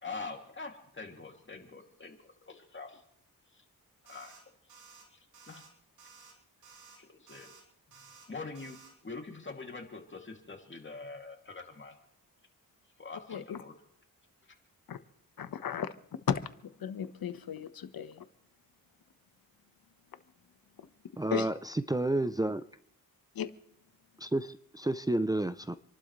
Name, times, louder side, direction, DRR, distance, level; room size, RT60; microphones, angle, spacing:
voice 1, 0.0-2.9 4.0-4.4 4.7-4.8 5.1-5.7 7.0-7.6 8.3-8.8 9.0-12.0 13.0-13.7 14.4-14.5, left 4 dB, 30° left, 2.7 m, -44 dB
sound 1, 4.1-4.4 4.7-5.0 5.3-5.7 6.0-6.3 6.6-7.0 7.3-7.6 7.9-8.3 8.6-8.9, right 5 dB, 85° right, 4.1 m, -55 dB
voice 2, 13.3-13.6 14.9-15.0 15.4-15.9 16.3-18.2 20.8-20.9 21.3-21.5 23.3-23.5, left 8 dB, 70° left, 1.3 m, -35 dB
voice 3, 21.2-22.6 24.2-25.8, right 1 dB, 10° right, 0.5 m, -30 dB
28.5 x 12.0 x 3.2 m
cardioid pair, 90°, 37 cm